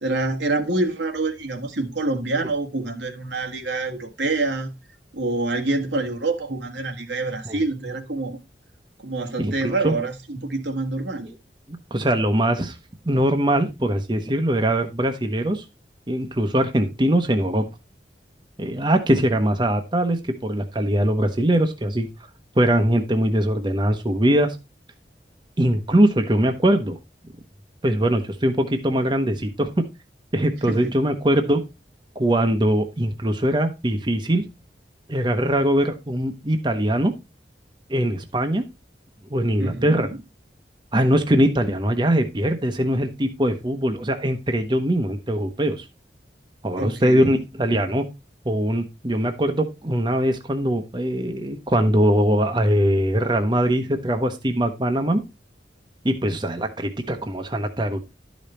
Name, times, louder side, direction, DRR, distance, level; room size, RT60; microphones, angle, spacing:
voice 1, 0.0-4.7 5.1-8.4 9.0-11.3 30.7-31.0 39.6-40.2 46.8-47.4, right 2 dB, 80° right, 1.7 m, -26 dB
voice 2, 9.4-9.9 11.2-11.3 11.9-12.8 13.0-15.6 16.1-17.6 18.6-22.1 22.6-24.6 25.6-27.0 27.8-29.7 30.3-31.6 32.1-34.5 35.1-37.1 37.9-38.6 39.3-40.1 40.9-45.9 46.6-48.0 48.4-55.2 56.0-58.0, right 1 dB, 25° right, 0.9 m, -21 dB
12.0 x 5.2 x 4.3 m
head